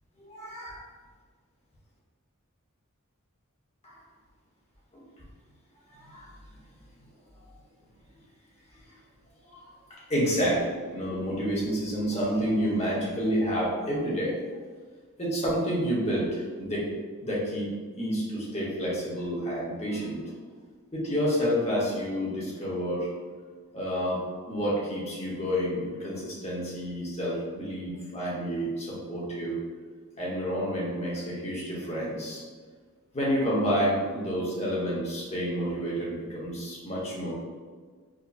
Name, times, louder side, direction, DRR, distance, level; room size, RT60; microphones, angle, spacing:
voice 1, 0.2-0.8 3.8-3.9 4.9-5.0 6.1-6.3 10.1-14.3 15.2-16.9 17.2-17.7 18.0-20.3 20.9-23.1 23.7-24.2 24.5-29.6 30.2-32.4 33.1-37.3, equal, 30° left, -6 dB, 1.0 m, -29 dB
5.0 x 2.2 x 2.6 m, 1.5 s
head